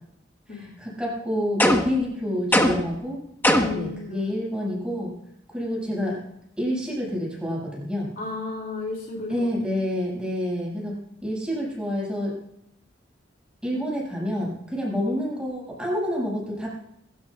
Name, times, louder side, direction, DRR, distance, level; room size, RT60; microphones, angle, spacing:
voice 1, 0.5-3.2 3.7-5.1 5.5-6.2 6.6-8.1 9.3-10.9 11.2-12.3 13.6-16.7, equal, 5° right, -5 dB, 6.7 m, -28 dB
sound 1, 1.6-2.0 2.5-3.0 3.4-3.9, left 1 dB, 10° left, 1.3 m, -20 dB
voice 2, 3.5-4.3 8.2-9.5, left 3 dB, 50° left, 0 dB, 2.9 m, -34 dB
25.5 x 13.5 x 2.5 m, 0.78 s
head